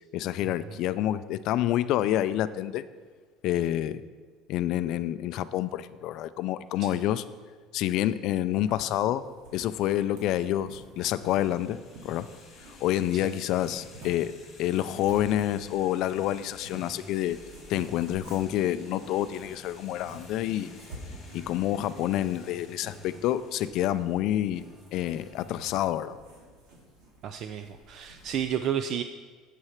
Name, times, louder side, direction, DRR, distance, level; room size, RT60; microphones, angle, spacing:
voice 1, 0.1-2.8 3.4-4.0 4.5-7.2 7.7-9.2 9.5-12.3 12.8-17.4 17.7-20.7 21.3-24.6 24.9-26.2, left 12 dB, 50° left, 14 dB, 0.4 m, -28 dB
sound 1, 8.5-28.4, right 1 dB, 65° right, 3.4 m, -50 dB
sound 2, 11.2-24.2, left 4 dB, 30° left, 2.1 m, -55 dB
sound 3, 12.5-13.6 14.6-23.5 24.5-25.6, equal, 10° left, 1.0 m, -52 dB
voice 2, 27.2-29.0, right 9 dB, 40° right, 9 dB, 0.4 m, -32 dB
8.4 x 8.0 x 5.8 m, 1.5 s
cardioid pair, 170°, 0 cm